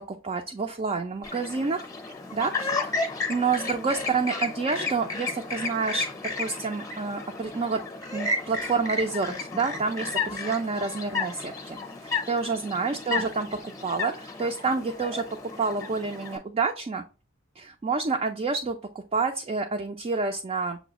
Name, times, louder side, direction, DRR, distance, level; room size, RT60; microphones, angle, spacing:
voice 1, 0.0-1.9 2.3-3.0 3.3-6.1 6.4-7.8 8.1-11.8 12.0-17.0 17.6-18.8 19.1-20.8, right 4 dB, 30° right, 4 dB, 0.3 m, -28 dB
Chirp tweet, 1.2-16.4, left 3 dB, 15° left, 0.7 m, -33 dB
6.8 x 2.3 x 2.9 m, 0.33 s
head